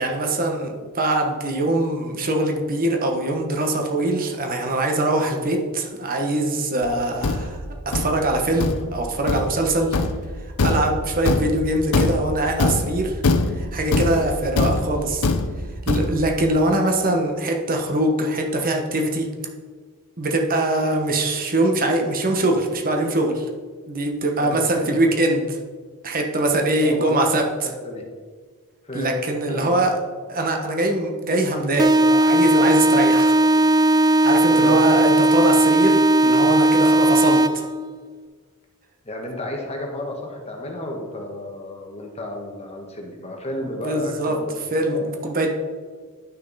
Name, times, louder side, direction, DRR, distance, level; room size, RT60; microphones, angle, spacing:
voice 1, 0.0-10.0 10.6-13.2 13.5-15.3 15.9-19.3 20.2-23.5 23.9-25.6 26.0-27.4 28.9-30.0 30.3-33.4 34.2-37.6 43.8-44.3 44.7-45.5, right 1 dB, 40° right, 2 dB, 1.1 m, -22 dB
Thump thud, 6.8-16.4, left 3 dB, 75° left, 0.8 m, -23 dB
voice 2, 24.4-25.0 26.8-27.2 27.6-28.0 28.8-29.2 29.5-29.7 34.5-34.8 39.0-44.5 44.9-45.0, left 1 dB, 30° left, 2 dB, 1.4 m, -32 dB
sound 1, 31.8-37.8, right 1 dB, 15° right, 0.3 m, -17 dB
10.5 x 6.5 x 4.1 m, 1.6 s
head